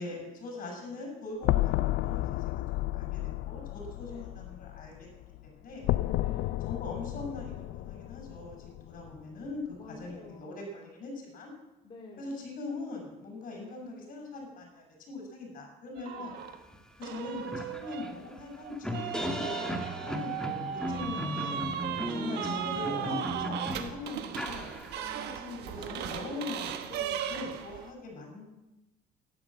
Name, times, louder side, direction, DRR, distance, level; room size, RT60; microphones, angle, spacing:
voice 1, 0.0-2.6 2.9-5.1 5.4-5.9 6.6-11.5 12.2-16.3 17.0-21.6 22.1-24.8 25.4-26.7 27.3-28.5, left 2 dB, 55° left, 1 dB, 7.1 m, -41 dB
sound 1, 1.4-5.5 5.8-9.2, left 16 dB, 80° left, 0.5 m, -32 dB
voice 2, 3.9-4.4 6.1-6.7 9.7-10.8 11.8-12.4 13.5-13.8 16.2-16.3 20.8-21.4 21.9-22.2 24.9-27.4, left 3 dB, 30° left, -1 dB, 2.6 m, -50 dB
sound 2, 16.0-16.6 17.0-27.9, right 10 dB, 80° right, 1.4 m, -37 dB
sound 3, 16.7-16.8 17.1-25.2, equal, 5° left, 1.6 m, -36 dB
12.5 x 11.5 x 7.7 m, 0.99 s
cardioid pair, 110°, 17 cm